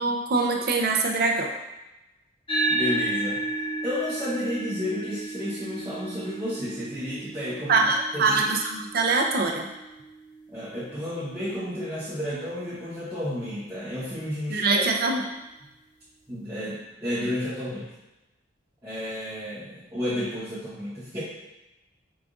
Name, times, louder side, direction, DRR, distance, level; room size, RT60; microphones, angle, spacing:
voice 1, 0.0-1.5 7.7-9.7 14.5-15.2, right 3 dB, 55° right, 2 dB, 0.5 m, -23 dB
sound 1, 2.5-11.2, right 2 dB, 25° left, 0.9 m, -33 dB
voice 2, 2.7-3.4 3.8-7.8 8.1-8.4 10.5-15.1 16.3-17.9 18.8-21.2, left 1 dB, 15° right, -11 dB, 1.0 m, -32 dB
4.9 x 3.5 x 2.5 m, 1.0 s
head